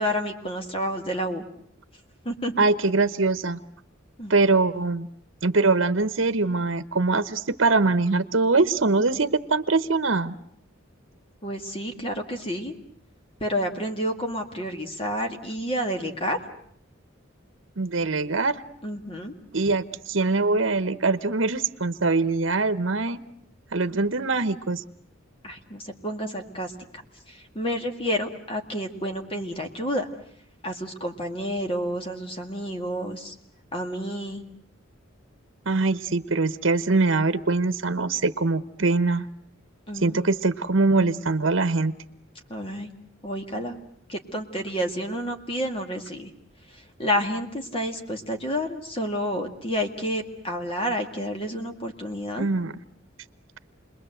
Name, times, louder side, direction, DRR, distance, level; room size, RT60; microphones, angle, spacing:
voice 1, 0.0-1.4 2.3-2.5 4.2-4.3 11.4-12.7 13.4-16.4 18.8-19.3 25.4-26.7 27.3-30.1 30.6-33.3 33.7-34.4 39.9-40.2 42.5-42.9 43.2-43.8 44.1-46.3 46.7-52.5, equal, 30° left, 4 dB, 2.1 m, -30 dB
voice 2, 2.6-3.6 4.3-5.1 5.4-10.4 17.8-18.6 19.5-23.2 23.7-24.8 35.7-39.2 40.0-41.9 52.4-52.7, right 3 dB, 70° right, 12 dB, 1.0 m, -23 dB
29.5 x 21.5 x 7.9 m, 0.68 s
head